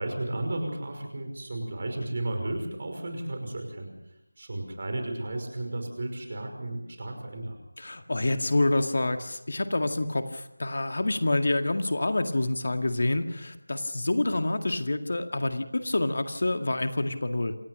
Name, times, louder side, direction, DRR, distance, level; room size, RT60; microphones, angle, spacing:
voice 1, 0.0-3.9 4.4-7.6, right 1 dB, 40° right, 5 dB, 5.6 m, -33 dB
voice 2, 7.8-17.6, left 2 dB, 50° left, 7 dB, 2.0 m, -27 dB
27.5 x 16.5 x 6.7 m, 0.87 s
figure-of-eight pair, 170°, 0 cm